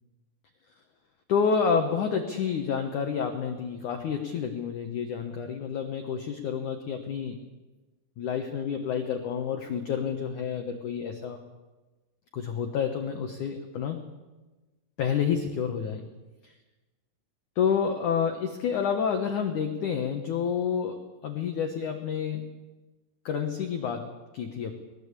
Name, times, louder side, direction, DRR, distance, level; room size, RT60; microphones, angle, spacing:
voice 1, 1.3-7.4 8.2-11.4 12.3-14.1 15.0-16.0 16.4-16.5 17.6-22.4 23.3-24.1 24.3-24.7, left 7 dB, 75° left, 5 dB, 1.8 m, -29 dB
20.5 x 19.0 x 8.4 m, 1.2 s
omnidirectional pair, 5.7 m